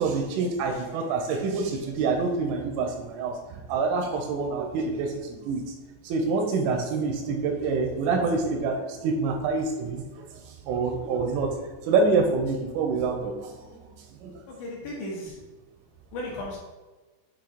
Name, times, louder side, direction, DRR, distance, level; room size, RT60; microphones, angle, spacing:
voice 1, 0.0-3.3 3.7-5.6 6.0-10.1 10.7-11.5 11.9-13.6 14.2-14.4, right 4 dB, 85° right, 3 dB, 3.1 m, -26 dB
voice 2, 14.5-15.4 16.1-16.6, left 1 dB, 70° left, -4 dB, 2.9 m, -35 dB
8.4 x 3.0 x 3.8 m, 1.2 s
omnidirectional pair, 5.9 m